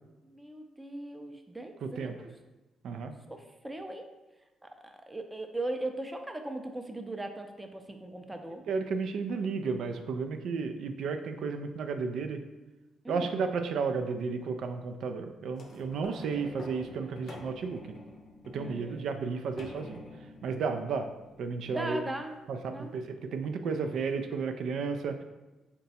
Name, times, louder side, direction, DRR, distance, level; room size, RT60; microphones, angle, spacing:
voice 1, 0.2-2.4 3.3-4.1 4.6-8.6 13.0-13.4 18.5-19.1 21.7-22.4 22.7-22.9, right 2 dB, 15° right, 5 dB, 0.5 m, -39 dB
voice 2, 1.8-2.1 2.8-3.1 8.7-12.4 13.1-17.8 18.5-20.0 20.4-21.1 21.4-22.0 22.5-25.2, right 5 dB, 75° right, 7 dB, 0.4 m, -33 dB
sound 1, 15.5-22.3 22.9-23.0, left 2 dB, 50° left, 0.6 m, -49 dB
3.9 x 2.2 x 4.1 m, 1.1 s
cardioid pair, 70°, 0 cm